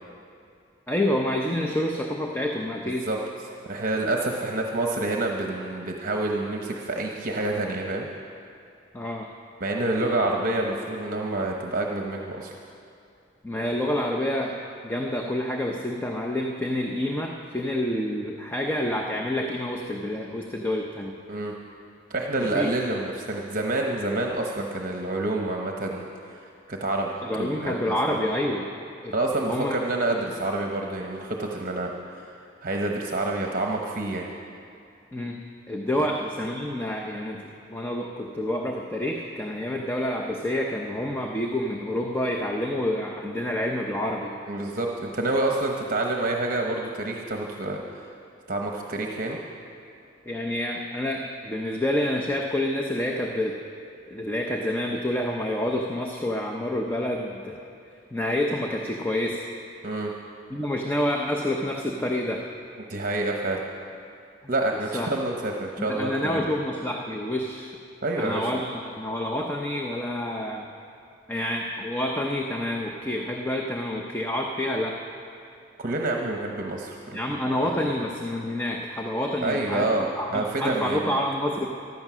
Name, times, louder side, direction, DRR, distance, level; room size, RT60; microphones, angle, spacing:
voice 1, 0.9-3.1 8.9-9.3 13.4-14.5 14.8-21.2 22.4-22.7 27.2-28.7 29.0-29.1 29.4-29.8 35.1-35.4 35.7-37.4 37.7-44.3 50.3-53.5 54.1-57.6 58.1-59.5 60.5-62.5 64.9-65.1 65.8-67.7 68.2-70.7 71.3-75.0 77.1-79.9 80.2-81.7, left 1 dB, 10° left, 1 dB, 0.7 m, -28 dB
voice 2, 3.7-8.1 9.6-12.6 21.3-21.5 22.1-28.2 29.1-32.3 32.6-34.2 36.0-36.1 44.4-47.8 48.5-49.4 59.8-60.1 62.9-63.6 64.5-66.4 68.0-68.6 75.8-77.7 79.4-81.2, right 2 dB, 45° right, 1 dB, 0.9 m, -28 dB
15.0 x 12.0 x 6.2 m, 2.5 s
head